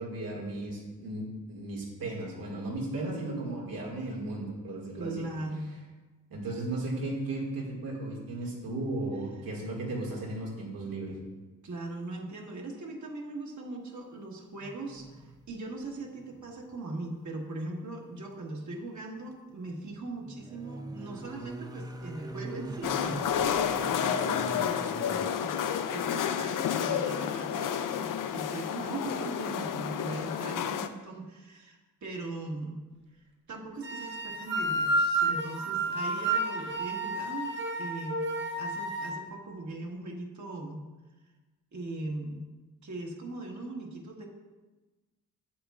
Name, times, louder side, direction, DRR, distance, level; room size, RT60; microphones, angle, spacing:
voice 1, 0.0-5.2 6.3-11.1, right 2 dB, 85° right, -2 dB, 2.1 m, -35 dB
voice 2, 5.0-5.6 11.6-25.6 25.9-32.8 33.5-38.3 38.6-40.8 41.7-42.5 42.8-44.3, right 2 dB, 55° right, -1 dB, 1.5 m, -40 dB
sound 1, 14.6-15.6 15.8-16.6 16.9-17.0 19.5-25.3 28.2-28.3, right 1 dB, 10° right, 0.5 m, -43 dB
sound 2, 22.8-30.9, left 8 dB, 70° left, 0.5 m, -30 dB
sound 3, 33.8-39.1, right 2 dB, 35° right, 1.3 m, -30 dB
8.4 x 8.0 x 2.4 m, 1.2 s
cardioid pair, 85°, 34 cm